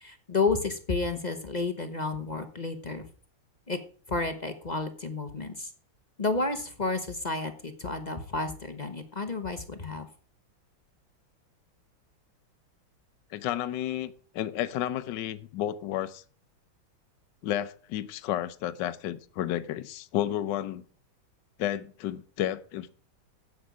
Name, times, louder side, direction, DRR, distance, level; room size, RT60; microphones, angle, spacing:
voice 1, 0.0-3.1 3.7-3.8 4.1-5.7 6.2-10.1, left 3 dB, 30° left, 0.9 m, -31 dB
voice 2, 13.3-16.2 17.4-20.8 21.6-22.9, left 12 dB, 70° left, 1.4 m, -32 dB
9.9 x 8.5 x 4.9 m
omnidirectional pair, 2.1 m